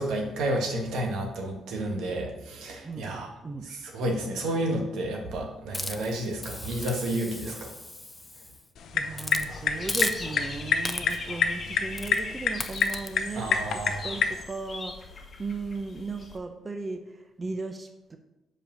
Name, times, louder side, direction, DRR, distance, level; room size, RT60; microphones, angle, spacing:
voice 1, 0.0-3.3 3.6-7.7 13.3-14.2, right 1 dB, 85° right, 1 dB, 1.5 m, -31 dB
voice 2, 2.8-3.7 4.1-4.4 8.9-13.6 13.8-18.2, right 3 dB, 30° right, 5 dB, 0.6 m, -37 dB
Hiss, 5.7-8.6 9.1-9.5 9.9-10.5 10.8-11.3 12.0-12.2 12.6-13.1, left 2 dB, 15° left, 0.5 m, -36 dB
sound 1, 8.8-14.4, left 6 dB, 70° left, 0.6 m, -29 dB
Dog / Bird, 9.4-16.4, left 3 dB, 40° left, 1.1 m, -40 dB
5.2 x 5.0 x 5.6 m, 0.95 s
cardioid pair, 90°, 0 cm